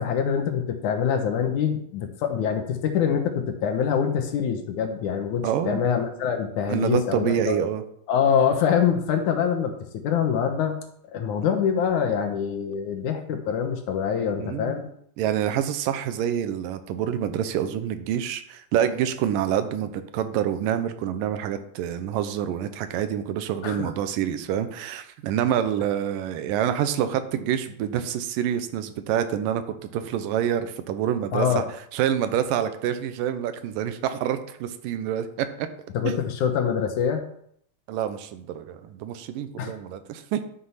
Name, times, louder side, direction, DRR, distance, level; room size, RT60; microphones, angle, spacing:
voice 1, 0.0-7.7 8.1-10.7 11.0-14.9 23.6-23.9 31.3-31.7 35.9-37.2 39.6-39.7, left 7 dB, 65° left, 6 dB, 2.3 m, -25 dB
voice 2, 5.4-5.8 6.7-7.8 14.4-14.7 15.2-29.6 29.9-31.6 31.9-35.7 36.0-36.2 37.9-40.4, right 10 dB, 80° right, 10 dB, 2.5 m, -27 dB
11.5 x 6.1 x 5.7 m, 0.69 s
omnidirectional pair, 4.1 m